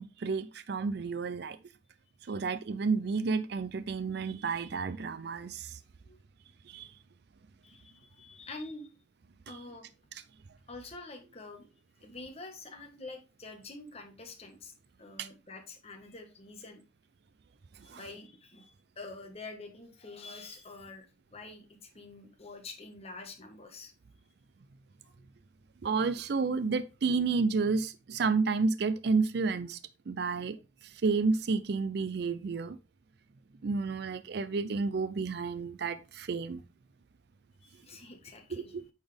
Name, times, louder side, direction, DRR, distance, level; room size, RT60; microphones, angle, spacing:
voice 1, 0.0-1.6 2.3-5.8 6.7-6.9 9.5-9.6 15.2-15.3 17.9-18.0 25.8-29.8 30.1-32.8 33.6-36.6 38.5-38.8, right 4 dB, 60° right, 0.4 m, -31 dB
voice 2, 7.6-8.9 9.5-9.9 10.7-11.7 12.0-14.7 15.0-16.8 17.8-23.9 25.0-25.1 37.6-38.7, left 3 dB, 35° left, 1.4 m, -47 dB
8.7 x 4.2 x 3.4 m
head